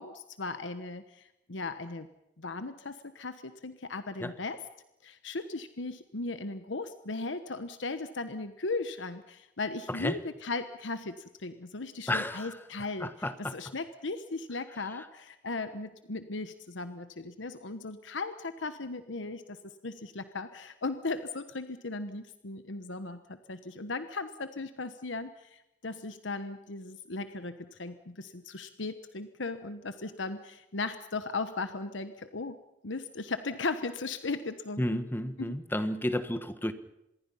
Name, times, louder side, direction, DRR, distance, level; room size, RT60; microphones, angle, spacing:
voice 1, 0.0-2.1 2.4-4.6 5.0-13.1 13.5-19.6 19.8-32.6 32.8-34.8 35.4-35.6, left 3 dB, 80° left, 10 dB, 1.2 m, -37 dB
voice 2, 12.1-12.6 13.0-13.6 15.0-15.1 34.8-36.7, left 1 dB, 10° left, 11 dB, 1.2 m, -32 dB
26.5 x 21.5 x 5.7 m, 0.87 s
head